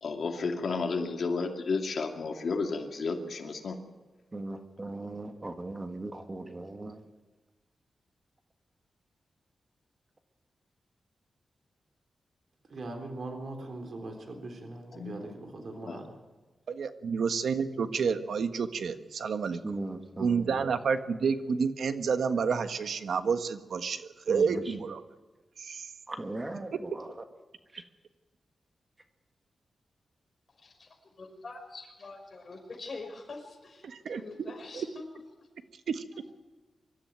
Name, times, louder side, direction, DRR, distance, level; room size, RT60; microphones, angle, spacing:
voice 1, 0.0-3.8 14.9-15.1 15.8-16.0, left 4 dB, 60° left, 4 dB, 2.4 m, -32 dB
voice 2, 4.3-7.0 19.6-20.7 24.3-24.7 26.1-27.1 27.7-27.8, right 2 dB, 25° right, 6 dB, 1.6 m, -38 dB
voice 3, 12.7-16.2, right 2 dB, 55° right, 4 dB, 3.7 m, -41 dB
voice 4, 16.7-19.6 20.2-25.0 25.6-25.9 33.8-34.2 35.9-36.0, right 5 dB, 80° right, 9 dB, 1.4 m, -29 dB
voice 5, 31.2-35.1 36.1-36.3, left 3 dB, 45° left, 3 dB, 5.4 m, -45 dB
24.5 x 13.0 x 9.0 m, 1.2 s
wide cardioid pair, 130°, 0 cm